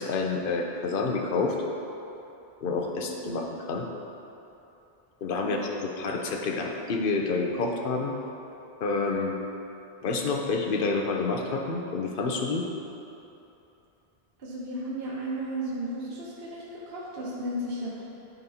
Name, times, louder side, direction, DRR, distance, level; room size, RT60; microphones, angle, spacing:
voice 1, 0.0-1.6 2.6-3.8 5.2-8.1 8.8-9.3 10.0-12.6, left 3 dB, 60° left, 1 dB, 0.8 m, -28 dB
voice 2, 14.4-18.1, right 1 dB, 65° right, -5 dB, 1.1 m, -34 dB
11.0 x 4.0 x 2.8 m, 2.9 s
omnidirectional pair, 1.0 m